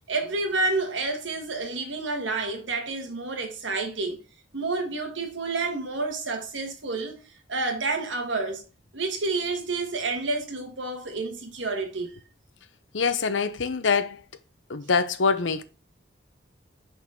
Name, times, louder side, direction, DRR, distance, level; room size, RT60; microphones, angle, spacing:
voice 1, 0.1-4.2 4.5-7.1 7.5-8.6 8.9-12.1, right 3 dB, 85° right, 1.5 m, -29 dB
voice 2, 12.9-14.2 14.7-15.6, left 5 dB, 85° left, 0.7 m, -24 dB
5.9 x 4.1 x 4.8 m
head